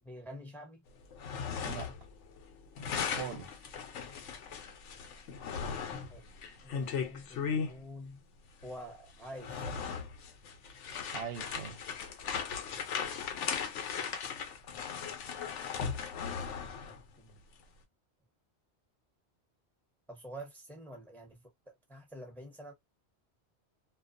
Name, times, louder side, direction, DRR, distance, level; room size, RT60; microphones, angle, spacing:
voice 1, 0.0-0.8 6.1-6.4 6.6-8.2 8.6-9.8 16.8-17.4 20.1-22.7, equal, ahead, 0.7 m, -48 dB
sound 1, 1.0-2.1 2.4-7.7 8.6-8.7 9.2-17.0, left 6 dB, 90° left, 0.9 m, -37 dB
voice 2, 1.6-1.9 3.2-3.6 11.1-11.8, right 8 dB, 65° right, 0.8 m, -41 dB
2.4 x 2.3 x 2.4 m
omnidirectional pair, 1.2 m